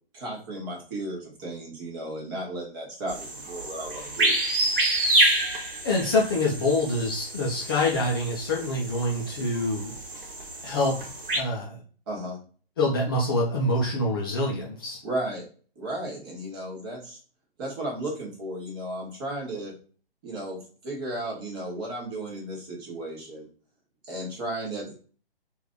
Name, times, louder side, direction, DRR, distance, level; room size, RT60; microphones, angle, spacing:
voice 1, 0.1-4.3 12.1-12.4 15.0-15.4 15.7-17.2 17.6-19.7 20.2-23.5 24.0-24.9, right 1 dB, 25° right, -2 dB, 1.3 m, -34 dB
sound 1, 3.1-11.4, right 1 dB, 60° right, 1.2 m, -28 dB
voice 2, 5.8-9.9 10.6-11.0 11.3-11.8 12.8-15.0, left 2 dB, 25° left, -3 dB, 0.6 m, -25 dB
3.1 x 2.6 x 3.7 m, 0.41 s
figure-of-eight pair, 130°, 30 cm